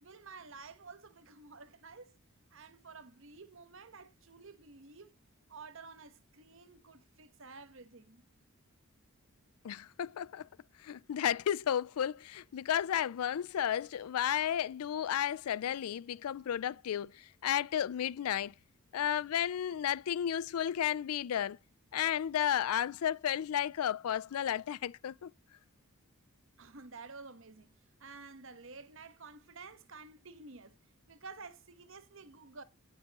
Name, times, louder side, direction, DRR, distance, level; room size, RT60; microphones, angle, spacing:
voice 1, 0.0-2.2 2.5-5.2 5.5-8.2 26.6-27.7 28.0-30.8 31.1-32.6, right 4 dB, 60° right, 1.2 m, -51 dB
voice 2, 9.6-10.5 10.8-18.5 18.9-21.6 21.9-25.3, left 10 dB, 90° left, 0.4 m, -33 dB
9.5 x 9.0 x 2.9 m
head